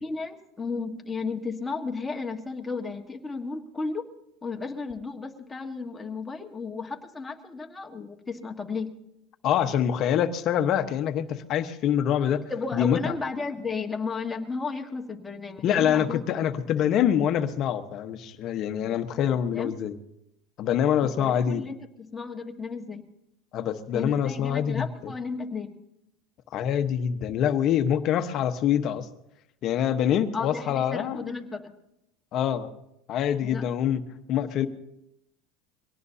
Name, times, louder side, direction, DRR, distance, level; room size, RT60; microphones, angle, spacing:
voice 1, 0.0-4.1 4.4-9.0 12.5-16.2 18.8-19.0 19.5-19.8 21.0-23.0 23.9-25.7 30.3-31.7 33.4-33.7, left 4 dB, 10° left, 2 dB, 1.6 m, -34 dB
voice 2, 9.4-13.1 15.6-19.9 20.6-21.7 23.5-25.1 26.5-29.1 29.6-31.4 32.3-32.7 33.1-34.0 34.3-34.7, left 9 dB, 45° left, 8 dB, 1.2 m, -25 dB
23.5 x 18.0 x 2.8 m, 0.82 s
supercardioid pair, 120°, 0 cm